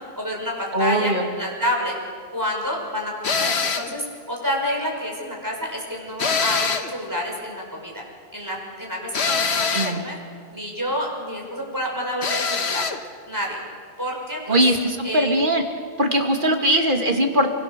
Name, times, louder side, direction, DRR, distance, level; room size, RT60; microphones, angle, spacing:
voice 1, 0.0-1.9 2.3-8.0 8.3-10.2 10.5-12.9 13.3-13.6 14.0-14.6 15.0-15.4, equal, 20° right, -1 dB, 6.2 m, -29 dB
voice 2, 0.7-1.3 9.7-10.1 14.5-15.6 16.0-17.5, right 1 dB, 50° right, 3 dB, 2.5 m, -20 dB
sound 1, 3.2-4.0 6.2-7.0 9.1-10.0 12.2-13.0, left 5 dB, 80° left, 1.5 m, -23 dB
27.5 x 24.5 x 6.8 m, 2.1 s
omnidirectional pair, 1.1 m